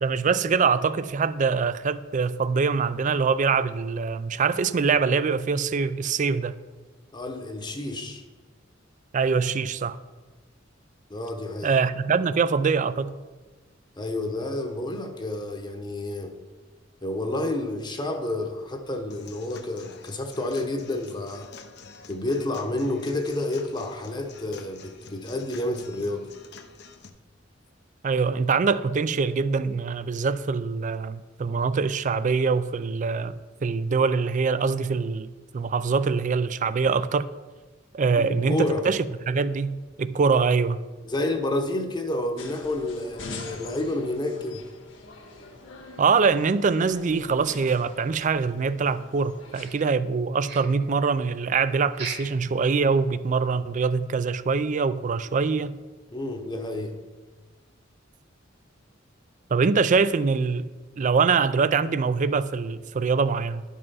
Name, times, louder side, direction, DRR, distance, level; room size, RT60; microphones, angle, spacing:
voice 1, 0.0-6.6 9.1-10.0 11.6-13.2 28.0-33.4 33.6-37.3 37.9-39.0 39.3-40.8 46.0-55.8 59.5-60.7 61.0-63.6, right 5 dB, 40° right, 0.4 m, -24 dB
voice 2, 7.1-8.2 11.1-11.8 14.0-16.3 17.0-21.5 22.1-26.3 38.1-38.9 41.0-44.6 56.1-56.9, left 1 dB, 25° left, 0.9 m, -30 dB
Human voice / Acoustic guitar / Drum, 19.1-27.1, left 5 dB, 60° left, 0.7 m, -48 dB
sound 1, 42.4-49.7, left 3 dB, 80° left, 1.5 m, -43 dB
sound 2, 49.5-50.2 50.4-50.9 51.9-52.4 52.8-52.9 53.3-53.4 53.9-54.0, right 4 dB, 60° right, 1.7 m, -38 dB
11.0 x 5.5 x 5.5 m
head